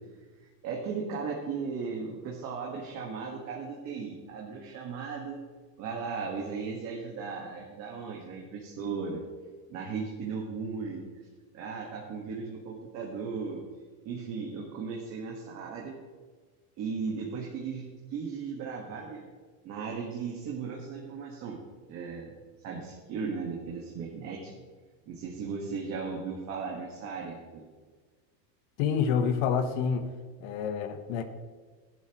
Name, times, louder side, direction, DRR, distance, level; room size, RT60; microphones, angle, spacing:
voice 1, 0.6-5.4 5.8-9.2 9.7-11.1 11.5-13.6 14.0-16.0 16.8-19.2 19.6-21.6 21.9-22.3 22.6-24.5 25.1-27.6, right 5 dB, 35° right, -2 dB, 1.5 m, -36 dB
voice 2, 28.8-30.1 30.4-31.2, left 7 dB, 55° left, 9 dB, 1.1 m, -28 dB
15.0 x 10.5 x 3.0 m, 1.4 s
supercardioid pair, 170°, 49 cm